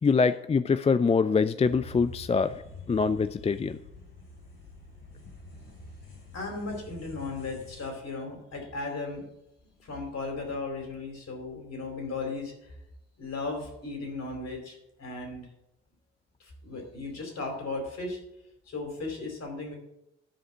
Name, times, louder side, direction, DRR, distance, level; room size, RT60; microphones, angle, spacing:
voice 1, 0.0-2.6 2.9-3.8, left 5 dB, 20° left, 13 dB, 0.4 m, -24 dB
sound 1, 1.6-7.9, left 2 dB, 75° left, 4.0 m, -46 dB
voice 2, 6.1-9.3 9.8-12.7 13.2-15.5 16.4-18.2 18.7-19.8, left 3 dB, 50° left, 2 dB, 4.3 m, -36 dB
11.5 x 5.0 x 8.0 m, 0.84 s
hypercardioid pair, 45°, 33 cm